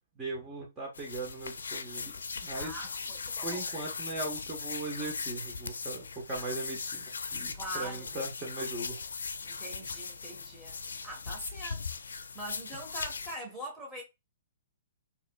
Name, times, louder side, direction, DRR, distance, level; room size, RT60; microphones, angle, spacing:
voice 1, 0.2-2.1 2.4-2.7 3.4-7.0 7.3-9.0, right 2 dB, 20° right, 1.3 m, -39 dB
sound 1, 0.9-13.4, left 5 dB, 85° left, 0.4 m, -39 dB
voice 2, 2.5-3.6 7.5-8.2 9.4-10.8 11.0-14.0, right 1 dB, ahead, 1.4 m, -43 dB
3.9 x 2.9 x 2.4 m
hypercardioid pair, 135°, 0 cm